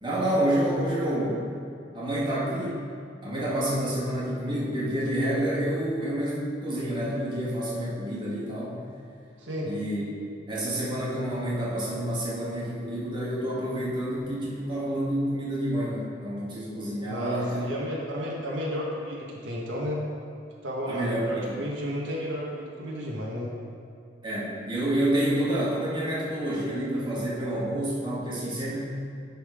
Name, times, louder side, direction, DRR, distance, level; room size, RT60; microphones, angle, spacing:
voice 1, 0.0-1.4 1.9-2.9 3.2-8.8 9.6-10.0 10.5-17.6 20.9-21.5 24.2-28.8, right 1 dB, 25° right, -7 dB, 1.8 m, -28 dB
voice 2, 9.4-9.7 17.1-20.0 20.6-23.5, equal, 80° right, -4 dB, 1.4 m, -32 dB
10.5 x 4.2 x 4.9 m, 2.4 s
head